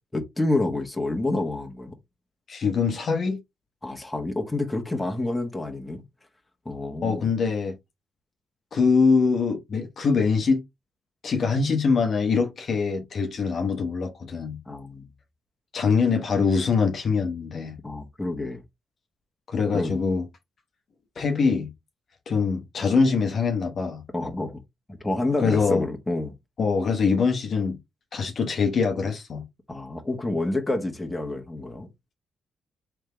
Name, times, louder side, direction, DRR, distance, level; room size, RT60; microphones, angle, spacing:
voice 1, 0.1-1.9 3.8-6.0 6.6-7.2 14.7-15.1 17.8-18.6 19.7-19.9 24.1-24.6 25.0-26.3 29.7-31.9, left 2 dB, 15° left, 1.4 m, -28 dB
voice 2, 2.5-3.4 7.0-7.8 8.7-10.6 11.2-14.6 15.7-17.8 19.5-20.3 21.2-21.7 22.3-24.0 25.4-25.9 26.6-27.8 28.1-29.4, left 5 dB, 60° left, 1.0 m, -23 dB
3.5 x 3.5 x 3.3 m
cardioid pair, 75°, 0 cm